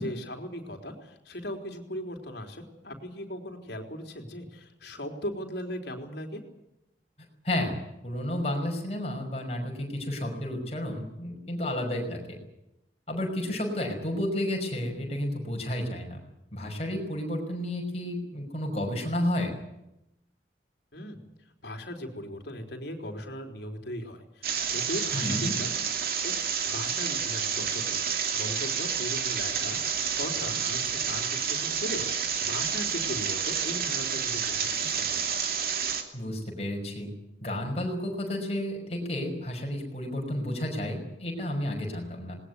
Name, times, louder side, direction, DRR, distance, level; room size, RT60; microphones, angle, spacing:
voice 1, 0.0-6.4 20.9-21.2 21.6-25.8 26.2-35.3, equal, 70° left, 4 dB, 3.9 m, -38 dB
voice 2, 7.4-12.4 13.1-16.2 16.5-19.5 25.1-25.5 36.1-37.1 37.4-42.4, left 1 dB, 35° left, 2 dB, 5.8 m, -31 dB
sound 1, 24.4-36.0, right 7 dB, 55° right, 2.8 m, -29 dB
20.0 x 19.5 x 9.7 m, 0.88 s
head